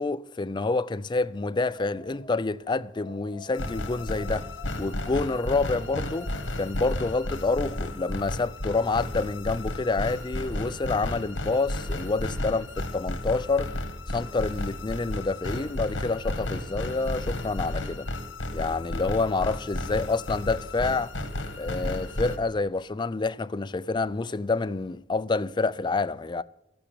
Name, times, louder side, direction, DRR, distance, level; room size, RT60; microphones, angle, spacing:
voice 1, 0.0-4.5 4.8-6.3 6.6-13.8 14.1-18.1 18.5-21.2 21.6-26.4, left 3 dB, 25° left, 0.4 m, -28 dB
Wind, 1.2-7.2, left 3 dB, 35° right, 6.3 m, -48 dB
sound 1, 3.5-22.4, left 1 dB, 70° left, 1.8 m, -33 dB
14.0 x 8.7 x 8.3 m
head